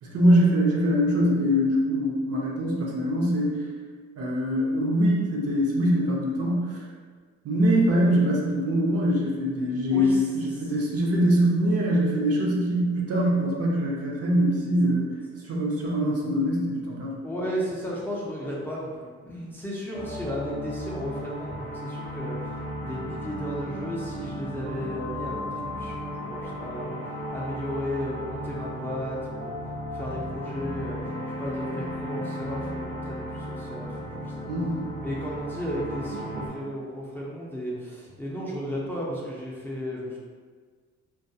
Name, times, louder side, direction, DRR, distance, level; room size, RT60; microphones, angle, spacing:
voice 1, 0.0-3.6 4.2-6.8 7.4-15.1 15.4-17.2 34.5-34.9 36.3-36.5, equal, 55° right, -3 dB, 0.7 m, -23 dB
voice 2, 9.9-10.2 10.5-10.7 17.2-22.5 22.8-27.0 27.3-29.5 29.9-31.0 31.4-34.3 35.0-40.2, equal, 5° left, -6 dB, 0.5 m, -34 dB
sound 1, 19.9-36.5, equal, 85° right, 0.7 m, -35 dB
2.3 x 2.2 x 2.6 m, 1.6 s
cardioid pair, 90°, 30 cm